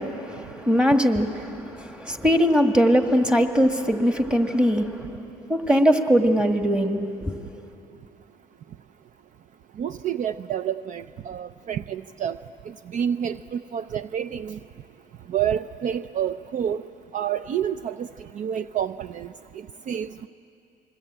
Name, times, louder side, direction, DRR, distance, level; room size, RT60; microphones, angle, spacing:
voice 1, 0.0-5.0 5.5-7.3, equal, 5° right, 5 dB, 1.8 m, -21 dB
voice 2, 9.8-12.3 12.9-14.6 15.3-16.8 17.1-18.1 18.4-19.3 19.9-20.3, right 9 dB, 50° right, 12 dB, 0.5 m, -28 dB
28.5 x 22.0 x 8.8 m, 2.8 s
cardioid pair, 110°, 17 cm